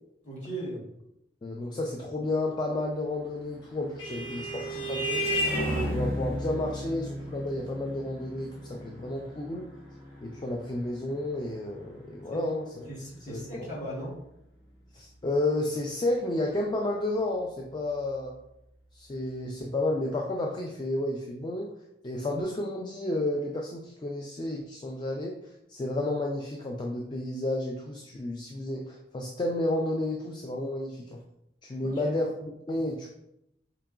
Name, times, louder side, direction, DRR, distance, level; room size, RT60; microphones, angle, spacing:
voice 1, 0.2-0.8 12.3-12.5 12.9-14.2 31.8-32.1, right 1 dB, 45° left, -6 dB, 1.5 m, -38 dB
voice 2, 1.4-5.3 5.8-9.7 10.2-12.9 13.3-13.7 14.9-18.3 18.9-21.7 22.0-25.4 25.7-31.2 31.6-33.1, left 1 dB, 25° left, 0 dB, 0.3 m, -31 dB
Vehicle horn car horn honking, 3.4-12.3, equal, 85° left, 1.2 m, -34 dB
4.5 x 2.9 x 2.4 m, 0.82 s
head